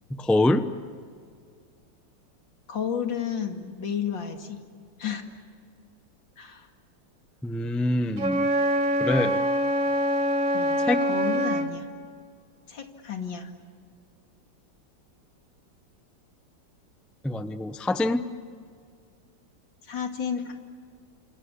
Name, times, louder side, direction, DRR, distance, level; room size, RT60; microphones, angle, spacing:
voice 1, 0.1-0.7 7.4-8.5 9.0-9.4 10.8-11.0 17.2-18.2, left 1 dB, ahead, 10 dB, 0.4 m, -25 dB
voice 2, 2.7-4.6 5.0-5.2 6.4-6.7 10.5-11.9 12.7-13.5 19.8-20.5, left 7 dB, 90° left, 4 dB, 3.0 m, -32 dB
Wind instrument woodwind instrument, 8.2-11.7, equal, 45° right, 2.2 m, -24 dB
28.0 x 27.0 x 7.1 m, 2.1 s
omnidirectional pair, 2.0 m